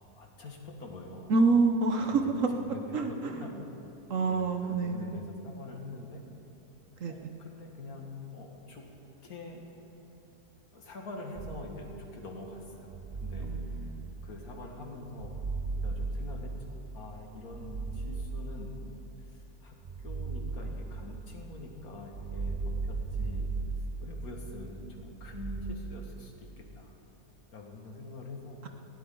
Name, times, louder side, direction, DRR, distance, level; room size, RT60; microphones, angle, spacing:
voice 1, 0.2-1.3 2.0-3.7 4.3-6.2 7.1-8.8 9.2-9.7 10.7-13.9 14.2-15.3 15.8-18.7 19.2-22.6 22.8-23.5 24.0-26.9 27.5-28.6, left 2 dB, 65° left, 1 dB, 2.3 m, -45 dB
voice 2, 1.3-2.5 2.9-3.6 4.1-5.2 7.0-7.3 13.4-14.2, right 3 dB, 60° right, 5 dB, 1.1 m, -28 dB
sound 1, 11.3-12.1 12.8-14.5 15.1-16.9 17.4-19.0 19.8-21.4 22.0-24.5 25.1-25.7, right 3 dB, 40° right, 0.6 m, -36 dB
19.5 x 17.0 x 3.8 m, 2.9 s
omnidirectional pair, 1.7 m